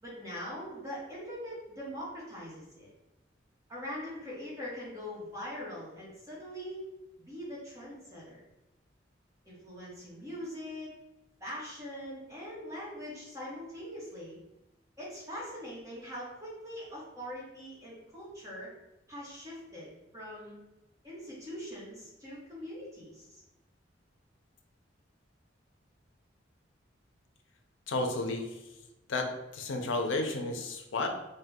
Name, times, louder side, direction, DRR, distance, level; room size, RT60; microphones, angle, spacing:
voice 1, 0.0-2.9 3.7-6.9 7.3-8.4 9.4-10.9 11.4-14.4 15.0-18.7 19.1-20.6 21.0-23.4, equal, 15° right, -7 dB, 1.0 m, -42 dB
voice 2, 27.9-28.6 29.1-31.1, left 2 dB, 90° left, 4 dB, 0.5 m, -32 dB
2.7 x 2.1 x 3.5 m, 0.96 s
head